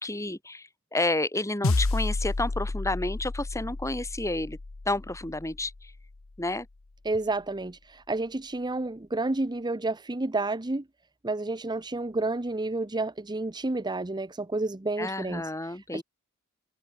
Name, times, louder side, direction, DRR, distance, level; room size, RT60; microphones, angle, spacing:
voice 1, 0.0-4.6 4.9-5.7 6.4-6.7 15.0-16.0, left 2 dB, 15° left, 3.0 m, -30 dB
sound 1, 1.6-6.2, left 2 dB, 65° left, 1.0 m, -31 dB
voice 2, 7.0-10.8 11.2-16.0, right 2 dB, 20° right, 0.8 m, -30 dB
head